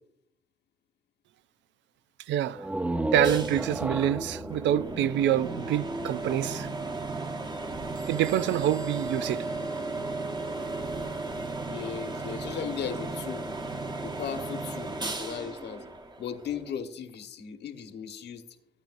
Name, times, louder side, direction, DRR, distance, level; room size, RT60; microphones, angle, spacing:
voice 1, 2.3-2.7 3.1-6.7 8.1-9.5, right 11 dB, 75° right, 0.4 m, -26 dB
sound 1, 2.5-6.2, right 1 dB, 5° right, 0.4 m, -33 dB
sound 2, 3.2-16.7, right 2 dB, 20° right, 1.2 m, -35 dB
Bell / Squeak, 8.0-10.5, right 4 dB, 40° right, 1.5 m, -52 dB
voice 2, 11.6-13.4 14.0-14.9 15.2-15.8 16.2-18.4, left 7 dB, 65° left, 1.3 m, -36 dB
15.0 x 8.8 x 2.6 m
cardioid pair, 85°, 19 cm